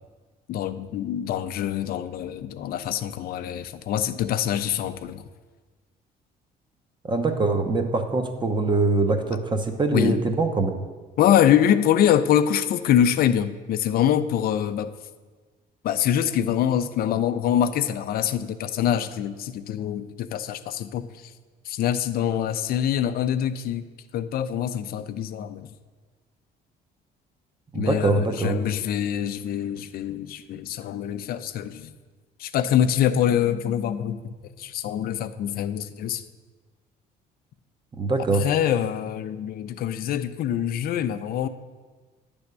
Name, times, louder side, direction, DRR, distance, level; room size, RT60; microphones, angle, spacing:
voice 1, 0.5-5.2 9.9-10.2 11.2-14.9 15.8-21.1 21.7-23.9 24.1-25.7 27.7-31.9 32.4-36.2 38.4-41.5, left 10 dB, 60° left, 12 dB, 0.5 m, -24 dB
voice 2, 7.1-10.7 27.7-28.6 37.9-38.5, right 3 dB, 25° right, 6 dB, 0.8 m, -23 dB
9.4 x 3.5 x 6.6 m, 1.4 s
cardioid pair, 110°, 17 cm